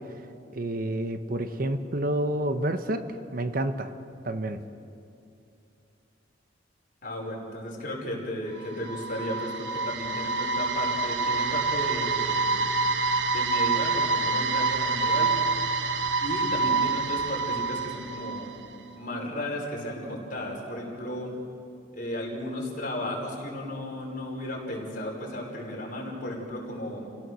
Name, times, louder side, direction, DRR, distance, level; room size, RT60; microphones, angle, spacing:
voice 1, 0.5-3.9 4.2-4.6, right 1 dB, 50° right, 9 dB, 1.0 m, -29 dB
voice 2, 7.0-12.6 13.2-15.3 16.2-18.5 19.0-21.3 21.9-27.1, left 1 dB, 50° left, -2 dB, 5.2 m, -34 dB
sound 1, 8.6-18.7, right 4 dB, 80° right, 1.3 m, -27 dB
29.0 x 17.5 x 6.4 m, 2.6 s
head